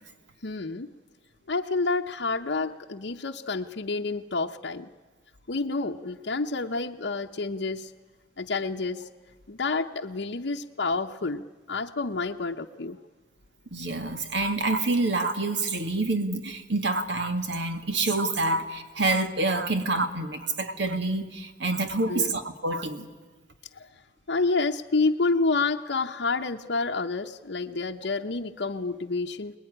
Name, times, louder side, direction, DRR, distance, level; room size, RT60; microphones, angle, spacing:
voice 1, 0.4-0.9 1.5-4.9 5.5-7.9 8.4-9.0 9.5-13.0 22.1-22.4 23.8-23.9 24.3-29.5, left 3 dB, 80° left, 2 dB, 0.8 m, -29 dB
voice 2, 13.7-23.1, right 2 dB, 85° right, 8 dB, 1.9 m, -27 dB
25.5 x 20.5 x 10.0 m, 1.3 s
head